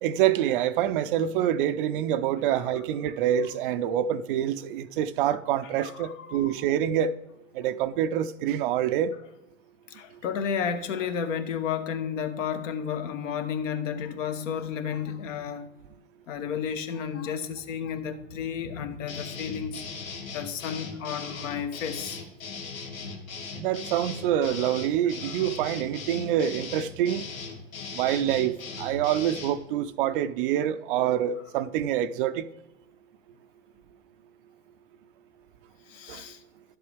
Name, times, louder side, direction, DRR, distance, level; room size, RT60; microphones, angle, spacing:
voice 1, 0.0-7.1 7.5-9.1 23.6-27.2 27.9-32.4 36.1-36.2, right 10 dB, 40° right, 0.4 m, -26 dB
voice 2, 2.5-2.8 5.8-6.6 9.9-15.7 16.3-19.8 20.3-22.2 25.2-25.4 35.9-36.4, left 7 dB, 65° left, 1.2 m, -32 dB
sound 1, 19.1-29.6, left 4 dB, 85° left, 1.8 m, -38 dB
11.5 x 7.7 x 3.4 m
hypercardioid pair, 125°, 40 cm